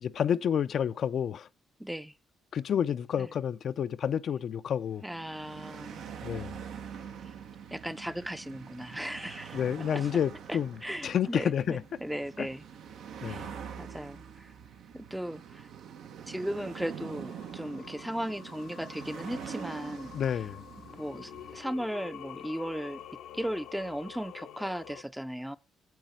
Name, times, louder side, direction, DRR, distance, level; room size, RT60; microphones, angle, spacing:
voice 1, 0.0-1.5 2.5-5.0 6.2-6.5 9.5-10.7 11.0-11.8 13.2-13.4 20.1-20.6, left 8 dB, 60° left, 0.4 m, -29 dB
voice 2, 1.8-2.2 3.2-3.3 5.0-6.1 7.2-7.3 7.7-9.6 9.9-10.1 10.5-12.7 13.2-14.5 14.9-15.7 16.3-20.4 20.8-23.0 23.3-25.6, equal, 5° right, 0.5 m, -37 dB
sound 1, 4.8-21.6, right 7 dB, 80° right, 1.0 m, -45 dB
Singing, 16.8-25.0, left 10 dB, 90° left, 0.8 m, -48 dB
9.0 x 8.1 x 4.6 m
cardioid pair, 90°, 0 cm